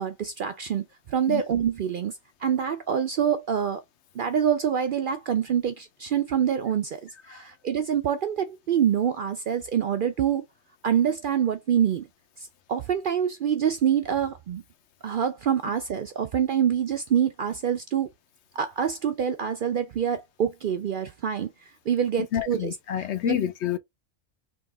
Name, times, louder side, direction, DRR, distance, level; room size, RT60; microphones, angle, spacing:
voice 1, 0.0-2.1 2.4-3.8 4.2-10.4 10.8-12.1 12.4-14.6 15.0-18.1 18.5-21.5 21.9-23.4, right 8 dB, 60° right, 0.5 m, -26 dB
voice 2, 22.3-23.8, left 10 dB, 70° left, 0.9 m, -28 dB
3.7 x 2.9 x 3.2 m
omnidirectional pair, 1.3 m